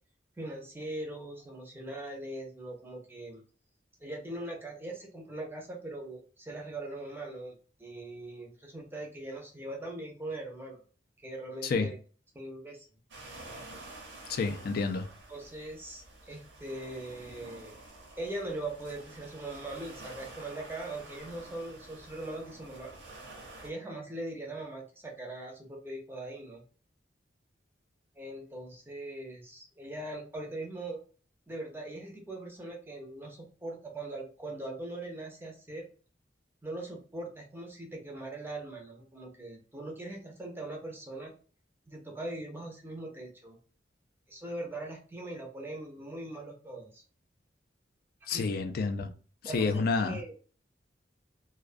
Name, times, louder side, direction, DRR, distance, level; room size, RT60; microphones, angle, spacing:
voice 1, 0.4-3.4 4.0-10.8 11.2-12.0 12.3-12.9 15.3-17.8 18.2-22.9 23.6-26.6 28.2-31.0 31.5-35.9 36.6-41.3 41.9-43.6 44.3-47.0 48.3-48.5 49.4-49.7 50.0-50.3, right 2 dB, 15° right, 0.5 m, -41 dB
sound 1, 13.1-23.7, right 2 dB, 80° right, 0.7 m, -49 dB
voice 2, 14.3-15.1 48.3-49.1 49.4-50.2, left 4 dB, 55° left, 0.4 m, -29 dB
2.2 x 2.2 x 2.5 m
head